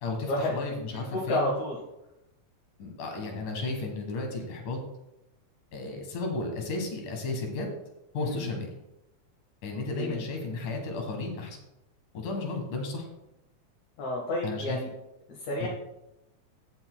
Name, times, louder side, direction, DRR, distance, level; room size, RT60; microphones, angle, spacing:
voice 1, 0.0-1.5 2.8-4.8 5.7-7.7 8.1-8.7 9.6-11.6 12.1-13.1 14.4-14.8 15.6-15.7, left 3 dB, 90° left, 2 dB, 3.1 m, -33 dB
voice 2, 0.9-1.8 8.2-8.5 9.9-10.2 14.0-14.9 15.3-15.7, left 1 dB, 70° left, -3 dB, 2.7 m, -31 dB
16.5 x 6.9 x 2.2 m, 0.92 s
omnidirectional pair, 3.5 m